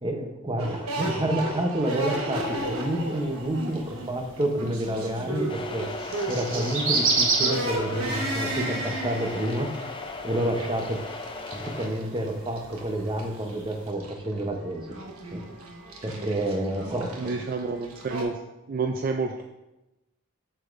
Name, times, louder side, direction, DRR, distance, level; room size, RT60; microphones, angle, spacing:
voice 1, 0.0-5.9 6.3-9.7 10.2-11.0 11.5-14.9 15.3-15.4 16.0-17.3, right 1 dB, 20° right, 3 dB, 0.8 m, -29 dB
sound 1, 0.6-18.2, right 1 dB, 85° right, 1.2 m, -35 dB
sound 2, 2.3-13.9, right 4 dB, 60° right, 1.2 m, -33 dB
sound 3, 5.5-11.9, left 3 dB, 25° left, 0.5 m, -37 dB
voice 2, 17.2-18.4 18.7-19.4, right 4 dB, 40° right, 4 dB, 0.4 m, -29 dB
7.7 x 7.0 x 2.6 m, 0.97 s
head